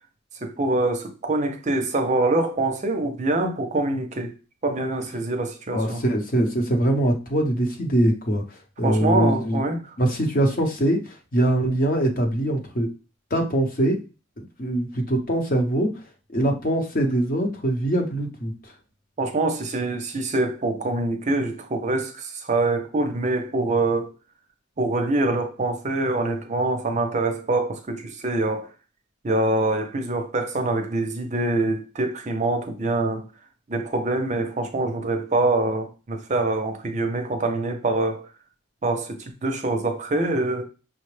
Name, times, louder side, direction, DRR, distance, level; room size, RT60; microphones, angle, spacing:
voice 1, 0.4-4.3 4.6-6.0 8.8-9.8 19.2-24.1 24.8-28.7 29.2-33.2 33.7-38.3 38.8-40.6, right 2 dB, 35° right, 0.5 m, -25 dB
voice 2, 5.7-9.6 10.0-12.9 13.3-14.0 14.4-18.7, right 1 dB, 40° left, 0.9 m, -23 dB
5.8 x 2.1 x 3.2 m
head